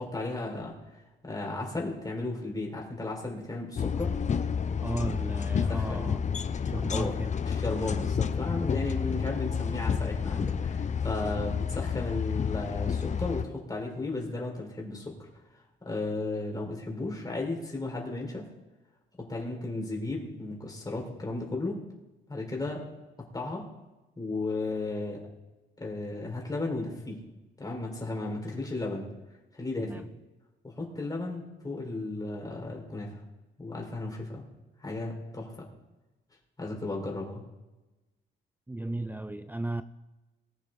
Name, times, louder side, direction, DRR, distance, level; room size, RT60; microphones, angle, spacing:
voice 1, 0.0-4.2 5.7-6.0 6.9-7.1 7.4-15.3 15.8-18.5 19.2-21.8 22.3-22.9 23.3-23.7 24.2-25.2 25.8-27.2 27.6-29.1 29.5-30.0 30.6-33.2 33.6-34.4 34.8-35.7 36.6-37.4, left 2 dB, 20° left, 4.6 m, -34 dB
sound 1, 3.8-13.4, left 6 dB, 35° left, 0.7 m, -30 dB
voice 2, 4.8-6.2 6.7-7.3 29.8-30.0 38.7-39.8, right 2 dB, 10° right, 0.5 m, -35 dB
20.5 x 8.3 x 4.0 m
cardioid pair, 90°, 20 cm